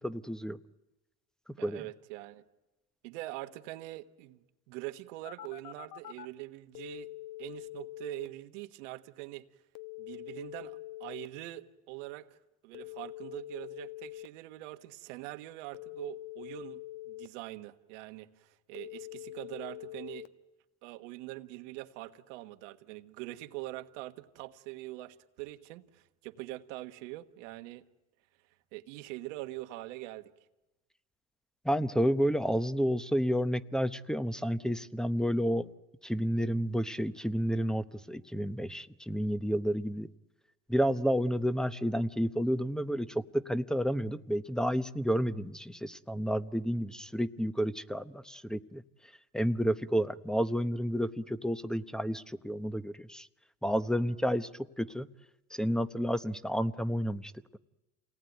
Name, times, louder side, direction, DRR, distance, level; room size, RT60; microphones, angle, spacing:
voice 1, 0.0-0.6 1.5-1.9 31.6-35.7 36.0-40.1 40.7-48.8 49.3-53.3 53.6-54.5 54.8-55.1 55.5-57.6, equal, ahead, 0.8 m, -30 dB
voice 2, 1.6-2.4 3.0-7.1 7.4-9.5 10.0-12.3 12.6-20.3 20.8-27.8 28.7-30.3, right 17 dB, 85° right, 1.4 m, -43 dB
Telephone, 5.3-6.3 6.8-8.3 9.8-11.3 12.7-14.3 15.7-17.3 18.8-20.3, left 16 dB, 65° left, 1.2 m, -44 dB
29.0 x 18.5 x 9.3 m
supercardioid pair, 100°, 36 cm